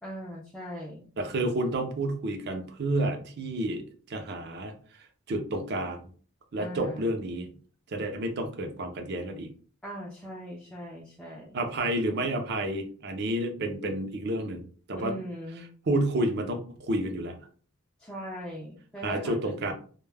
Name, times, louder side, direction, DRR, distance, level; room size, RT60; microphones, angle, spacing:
voice 1, 0.0-1.1 6.6-7.2 9.8-11.6 14.9-15.6 18.0-19.7, equal, 5° left, -5 dB, 0.4 m, -40 dB
voice 2, 1.2-3.8 4.1-4.7 5.3-6.0 6.5-7.5 7.9-9.5 11.5-14.6 14.9-15.1 15.9-17.4 19.0-19.7, right 1 dB, 55° right, 5 dB, 0.5 m, -30 dB
2.2 x 2.0 x 3.2 m, 0.42 s
head